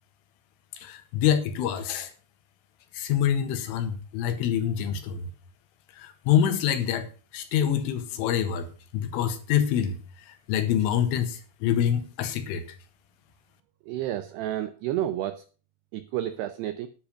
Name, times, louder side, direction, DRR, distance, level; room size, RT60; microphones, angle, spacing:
voice 1, 0.8-2.1 2.9-5.3 6.0-7.1 7.3-8.7 8.9-10.0 10.5-12.6, left 9 dB, 80° left, 9 dB, 3.9 m, -26 dB
voice 2, 13.9-15.4 15.9-16.9, right 12 dB, 85° right, 11 dB, 2.3 m, -30 dB
10.5 x 10.0 x 5.1 m, 0.37 s
omnidirectional pair, 5.6 m